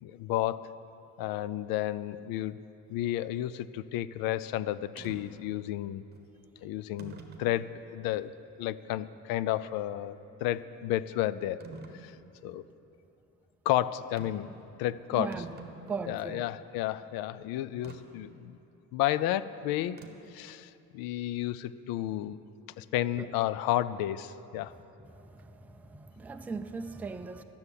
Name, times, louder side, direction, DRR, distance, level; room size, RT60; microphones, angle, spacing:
voice 1, 0.0-0.8 1.2-2.6 2.9-6.0 6.6-8.3 8.6-11.6 12.0-12.1 12.4-12.6 13.7-14.5 14.8-15.4 16.1-18.6 18.9-20.0 20.3-22.4 22.8-24.7, left 13 dB, 90° left, 17 dB, 0.5 m, -32 dB
sound 1, 5.0-5.2 6.1-6.2 7.0-7.5 8.1-8.2 11.6-12.0 14.2-14.5 14.9-15.0 15.2-16.3 17.8-18.0 20.0-20.4, right 4 dB, 30° right, 1.1 m, -47 dB
voice 2, 15.9-16.4 25.3-27.4, right 4 dB, 5° right, 7 dB, 0.3 m, -38 dB
12.5 x 7.1 x 9.8 m, 2.9 s
cardioid pair, 145°, 34 cm